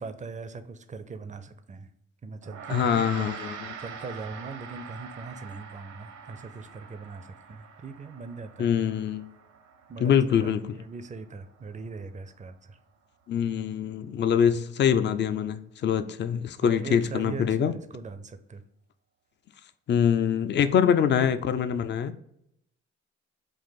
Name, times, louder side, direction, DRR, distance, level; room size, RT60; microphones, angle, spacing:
voice 1, 0.0-1.9 2.2-3.0 3.4-8.7 9.9-10.1 10.4-12.8 16.6-18.6 21.1-21.3, right 4 dB, 25° right, 10 dB, 0.5 m, -40 dB
Gong, 2.4-12.0, right 6 dB, 60° right, 0.7 m, -44 dB
voice 2, 2.7-3.7 8.6-9.2 10.0-10.7 13.3-17.7 19.9-22.1, left 8 dB, 35° left, 10 dB, 0.4 m, -24 dB
3.5 x 2.5 x 4.0 m, 0.77 s
hypercardioid pair, 45°, 32 cm